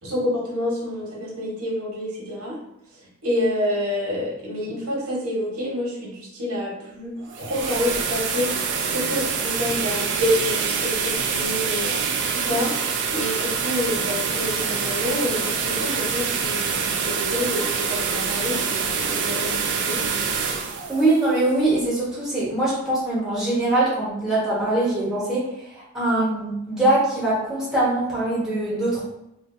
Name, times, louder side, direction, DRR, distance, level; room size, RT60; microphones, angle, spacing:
voice 1, 0.0-2.6 3.2-8.5 8.9-11.9 12.3-12.7 13.1-20.0, left 1 dB, 90° right, -5 dB, 1.2 m, -28 dB
sound 1, 7.2-22.1, right 6 dB, 55° right, 0.4 m, -26 dB
voice 2, 20.9-29.0, right 2 dB, ahead, -8 dB, 1.0 m, -22 dB
3.2 x 2.5 x 2.6 m, 0.82 s
head